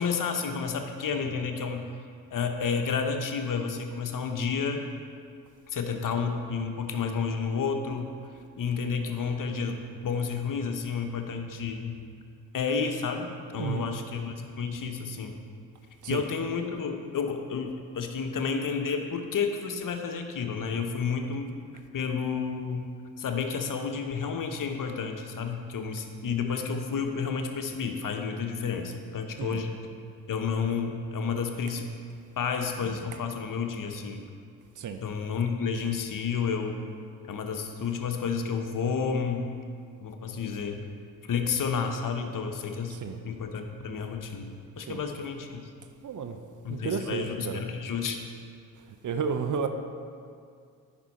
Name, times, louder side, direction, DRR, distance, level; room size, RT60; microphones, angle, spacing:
voice 1, 0.0-1.9 2.3-4.8 5.7-8.1 8.6-12.0 12.5-15.4 16.1-21.6 21.9-22.9 23.2-29.8 30.3-31.9 32.4-34.2 35.0-36.8 37.3-39.5 40.0-40.9 41.3-43.0 43.2-45.6 46.6-48.2, left 5 dB, 45° left, 5 dB, 0.9 m, -31 dB
voice 2, 13.5-13.9 16.0-16.2 29.4-29.6 34.8-35.0 42.9-43.2 44.9-45.0 46.0-46.4 46.7-47.7 49.0-49.7, right 6 dB, 45° right, 7 dB, 0.7 m, -32 dB
9.7 x 5.3 x 4.2 m, 2.3 s
hypercardioid pair, 40°, 45 cm